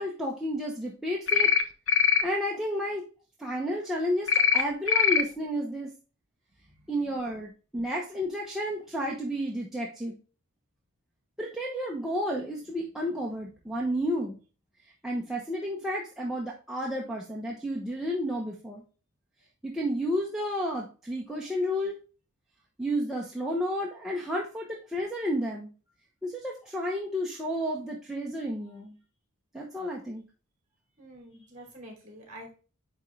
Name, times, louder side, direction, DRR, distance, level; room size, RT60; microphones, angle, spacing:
voice 1, 0.0-1.5 2.2-3.1 3.4-5.9 6.9-10.1 11.4-14.4 15.0-18.8 19.6-22.0 22.8-25.7 26.2-29.0 29.5-30.2, equal, ahead, -3 dB, 0.9 m, -31 dB
sound 1, 1.3-1.6 1.9-2.2 4.3-4.6 4.9-5.2, left 7 dB, 60° left, 0.7 m, -21 dB
voice 2, 31.0-32.5, right 1 dB, 35° right, 1 dB, 3.2 m, -47 dB
8.9 x 3.6 x 3.2 m, 0.35 s
head